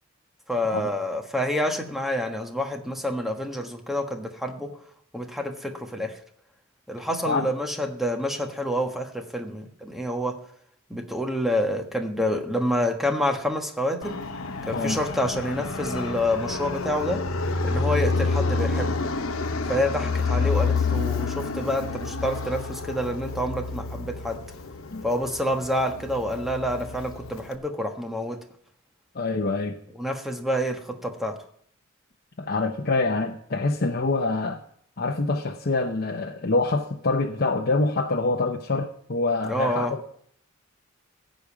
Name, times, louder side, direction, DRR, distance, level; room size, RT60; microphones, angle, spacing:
voice 1, 0.5-4.7 5.1-6.1 6.9-10.4 10.9-14.3 14.7-17.2 17.6-18.9 19.7-24.4 25.0-28.4 30.0-31.4 39.4-39.9, equal, ahead, 3 dB, 1.3 m, -28 dB
Fixed-wing aircraft airplane, 14.0-27.5, left 4 dB, 80° left, 0.9 m, -28 dB
voice 2, 29.1-29.8 32.4-34.6 35.0-40.0, left 3 dB, 50° left, 1 dB, 0.8 m, -25 dB
15.5 x 5.3 x 8.5 m, 0.65 s
head